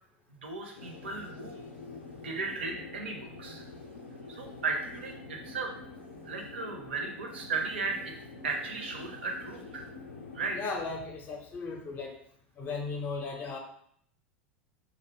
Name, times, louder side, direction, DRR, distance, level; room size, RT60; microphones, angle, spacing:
voice 1, 0.4-1.6 2.2-3.6 4.3-5.7 6.2-8.0 8.4-9.9 10.3-10.6, right 4 dB, 70° right, 3 dB, 0.5 m, -35 dB
sound 1, 0.7-10.6, left 3 dB, 80° left, 0.4 m, -46 dB
voice 2, 10.5-12.2 12.6-13.6, left 4 dB, 30° left, 2 dB, 0.5 m, -36 dB
2.5 x 2.0 x 2.7 m, 0.66 s
figure-of-eight pair, 80°, 6 cm